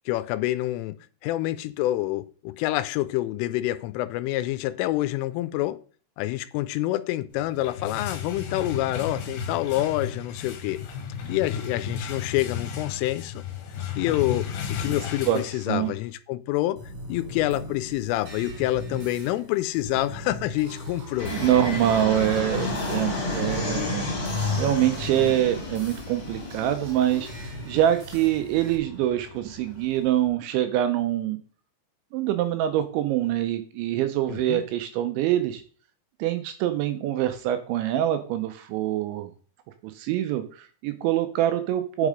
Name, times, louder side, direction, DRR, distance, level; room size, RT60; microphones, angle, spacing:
voice 1, 0.1-0.9 1.2-5.8 6.2-10.8 11.3-13.5 14.0-16.8 17.1-21.3 34.3-34.6, left 16 dB, 85° left, 3.1 m, -27 dB
sound 1, 7.4-16.1, left 7 dB, 65° left, 2.6 m, -34 dB
sound 2, 16.8-28.8, left 2 dB, 35° right, 2.7 m, -38 dB
Fixed-wing aircraft airplane, 21.2-30.2, left 2 dB, 25° left, 2.4 m, -32 dB
voice 2, 21.3-24.1 24.6-31.4 32.1-35.6 36.2-39.3 39.8-42.1, right 12 dB, 80° right, 2.8 m, -25 dB
8.5 x 6.5 x 5.0 m
omnidirectional pair, 5.8 m